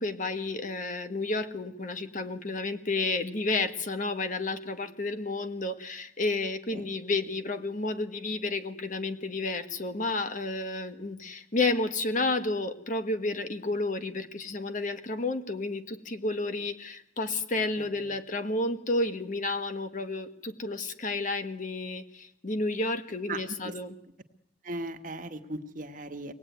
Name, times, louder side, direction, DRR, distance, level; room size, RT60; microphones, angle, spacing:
voice 1, 0.0-23.9, left 2 dB, 45° left, 8 dB, 1.6 m, -31 dB
voice 2, 17.8-18.2 23.3-23.8 24.6-26.3, right 2 dB, 50° right, 7 dB, 1.6 m, -38 dB
25.0 x 18.5 x 9.4 m, 0.80 s
head